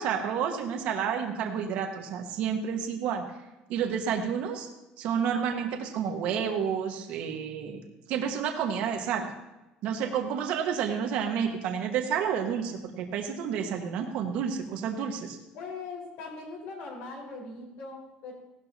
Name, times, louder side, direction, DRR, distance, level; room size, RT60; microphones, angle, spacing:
voice 1, 0.0-3.2 3.7-4.7 5.0-7.8 8.1-9.3 9.8-15.4, right 7 dB, 55° right, 3 dB, 1.5 m, -30 dB
voice 2, 15.5-18.3, left 3 dB, 65° left, -2 dB, 4.9 m, -40 dB
18.0 x 12.0 x 2.9 m, 0.99 s
cardioid pair, 175°, 3 cm